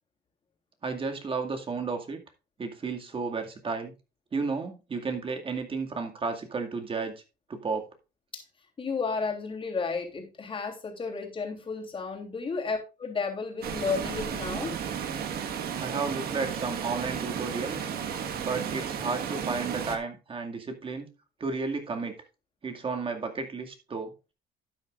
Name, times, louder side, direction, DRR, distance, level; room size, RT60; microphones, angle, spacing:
voice 1, 0.8-2.2 2.6-3.9 4.3-7.1 7.5-7.8 15.8-17.9 18.4-21.1 21.4-22.1 22.6-24.1, right 4 dB, 30° right, 4 dB, 2.1 m, -32 dB
voice 2, 8.8-14.7, left 4 dB, 30° left, 2 dB, 3.2 m, -32 dB
Water, 13.6-20.0, right 8 dB, 65° right, 1.6 m, -33 dB
12.0 x 8.6 x 2.5 m, 0.29 s
cardioid pair, 110°, 17 cm